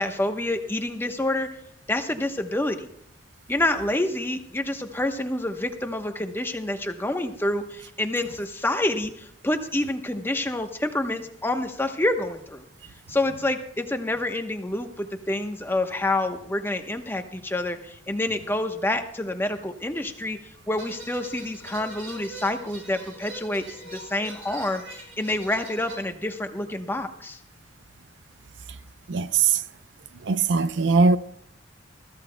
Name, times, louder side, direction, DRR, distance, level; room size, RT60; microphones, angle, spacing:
voice 1, 0.0-1.5 1.9-2.9 3.5-12.6 13.1-20.4 20.7-27.4, left 1 dB, 10° left, 0.9 m, -28 dB
sound 1, 20.8-26.0, right 1 dB, 85° right, 5.9 m, -42 dB
voice 2, 29.1-29.6 30.2-31.2, right 4 dB, 70° right, 0.5 m, -20 dB
21.5 x 14.0 x 2.2 m
head